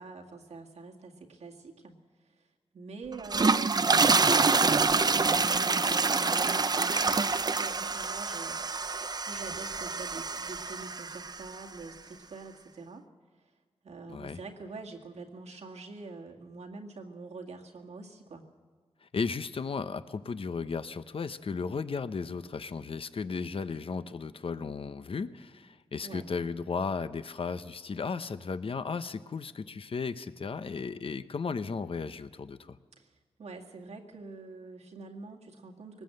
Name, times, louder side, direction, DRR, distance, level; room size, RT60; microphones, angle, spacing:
voice 1, 0.0-2.5 2.7-13.1 13.8-18.5 26.0-26.3 33.0-36.0, right 3 dB, 85° right, 1 dB, 2.1 m, -46 dB
sound 1, 3.1-11.5, right 4 dB, 40° right, 0.6 m, -26 dB
voice 2, 19.0-32.8, left 5 dB, 60° left, 12 dB, 0.8 m, -35 dB
21.0 x 19.0 x 7.8 m, 1.5 s
cardioid pair, 70°, 11 cm